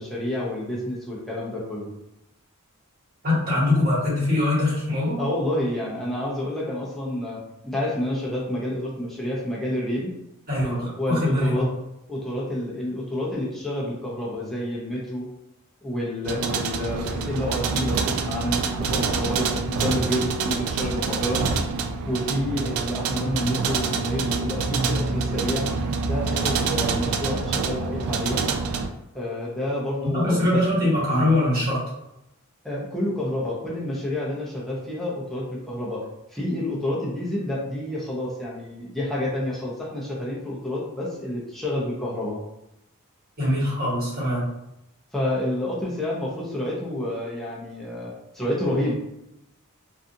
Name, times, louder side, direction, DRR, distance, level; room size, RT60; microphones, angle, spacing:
voice 1, 0.0-1.9 5.2-10.1 10.6-11.7 12.1-15.3 15.8-21.4 22.0-25.7 26.0-28.5 29.1-30.6 32.6-36.0 36.3-42.4 45.1-48.9, left 1 dB, ahead, -6 dB, 0.5 m, -29 dB
voice 2, 3.2-5.2 10.5-11.7 30.0-31.8 43.4-44.4, left 1 dB, 45° right, -8 dB, 1.4 m, -22 dB
sound 1, 16.2-28.9, right 4 dB, 75° right, 0.3 m, -26 dB
2.5 x 2.3 x 2.6 m, 0.86 s
head